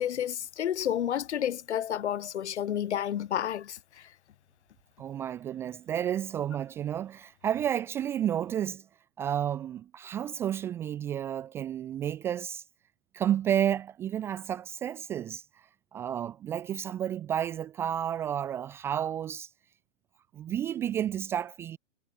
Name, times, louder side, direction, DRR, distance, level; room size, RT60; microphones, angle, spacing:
voice 1, 0.0-3.8, left 10 dB, 60° left, 2.2 m, -30 dB
voice 2, 5.0-8.8 9.2-12.6 13.1-15.4 15.9-19.5 20.3-21.8, right 10 dB, 5° right, 0.7 m, -31 dB
hypercardioid pair, 170°, 37 cm